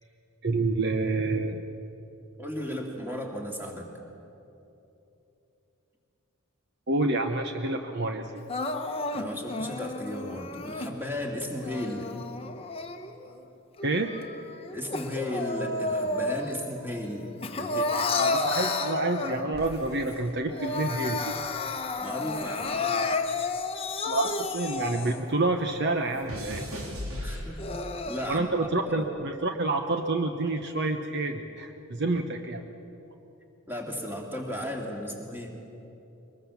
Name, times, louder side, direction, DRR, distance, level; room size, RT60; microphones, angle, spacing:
voice 1, 0.4-1.6 6.9-8.3 13.8-14.1 18.2-21.3 24.1-26.7 28.3-32.6, right 2 dB, 50° right, 5 dB, 0.9 m, -28 dB
voice 2, 2.4-3.9 9.1-12.1 14.7-17.3 17.6-17.9 22.0-22.9 27.1-27.8 28.1-28.7 28.9-29.1 33.7-35.5, left 1 dB, 10° right, 0 dB, 2.5 m, -35 dB
Crying sobbing, 8.5-10.9 11.5-13.3 13.8-16.7 17.0-19.7 20.1-20.2 20.5-25.3 25.9-26.0 26.5-26.6 27.3-28.3, left 3 dB, 25° left, 1.0 m, -31 dB
sound 1, 19.5-22.0 22.3-25.0 25.2-28.0 28.8-29.1, equal, 80° right, 3.6 m, -40 dB
23.0 x 20.5 x 7.2 m, 3.0 s
head